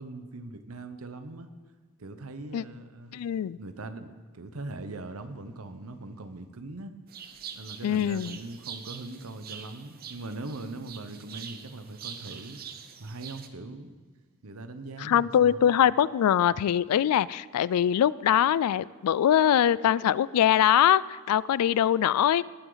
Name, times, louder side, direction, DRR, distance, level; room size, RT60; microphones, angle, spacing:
voice 1, 0.0-1.5 2.0-3.2 3.6-6.9 7.5-12.6 13.0-13.9 14.4-15.7, right 2 dB, 75° right, 9 dB, 0.9 m, -41 dB
voice 2, 3.1-3.6 7.8-8.4 15.0-22.4, left 10 dB, 90° left, 18 dB, 0.3 m, -23 dB
sound 1, 7.1-13.5, right 7 dB, 45° right, 0.7 m, -44 dB
18.5 x 8.0 x 4.0 m, 1.4 s
head